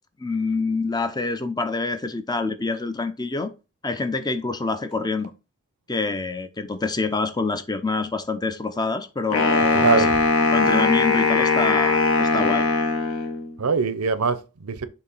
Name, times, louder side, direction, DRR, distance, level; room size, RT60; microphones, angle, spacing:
voice 1, 0.2-3.5 3.8-5.3 5.9-10.1 10.5-12.7, left 3 dB, 20° left, 0.6 m, -26 dB
Wind instrument woodwind instrument, 9.3-13.6, left 3 dB, 65° left, 1.2 m, -20 dB
voice 2, 9.7-10.2 13.6-14.9, right 4 dB, 75° right, 0.7 m, -23 dB
6.9 x 2.8 x 5.4 m
head